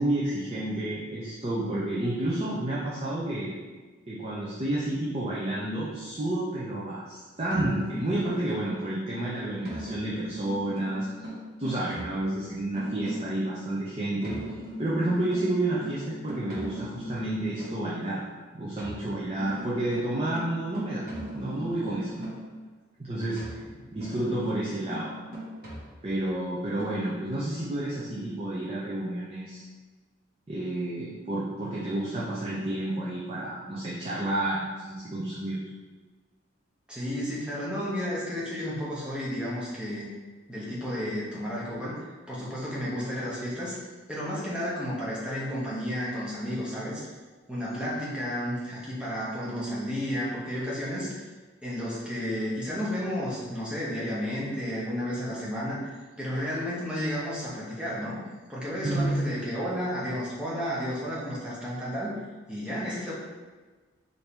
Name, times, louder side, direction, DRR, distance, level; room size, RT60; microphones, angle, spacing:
voice 1, 0.0-3.5 4.1-11.3 11.6-14.4 14.8-18.2 18.5-21.0 21.3-22.3 23.0-23.6 23.9-25.3 26.0-29.6 30.5-35.6 58.8-59.2, right 1 dB, 30° right, -7 dB, 0.5 m, -30 dB
sound 1, 7.5-8.9 9.6-13.4 14.2-17.9 18.8-22.6 23.4-26.3 26.8-27.0, equal, 50° right, 1.1 m, -39 dB
voice 2, 36.9-40.1 40.5-43.8 44.1-47.0 47.5-51.1 51.6-58.2 58.5-62.1 62.5-63.1, equal, 5° right, -7 dB, 0.9 m, -32 dB
4.4 x 2.7 x 3.3 m, 1.3 s
head